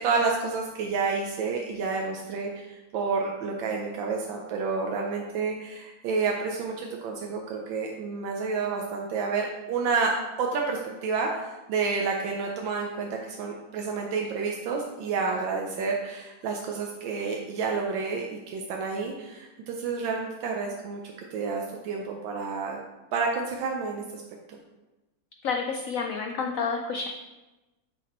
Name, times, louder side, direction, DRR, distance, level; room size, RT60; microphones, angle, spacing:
voice 1, 0.0-10.1 10.4-21.0 21.3-22.8 23.1-24.2, right 4 dB, 90° right, 1 dB, 1.4 m, -29 dB
voice 2, 25.4-27.1, left 5 dB, 85° left, 3 dB, 0.7 m, -29 dB
7.1 x 4.1 x 4.3 m, 1.1 s
omnidirectional pair, 2.0 m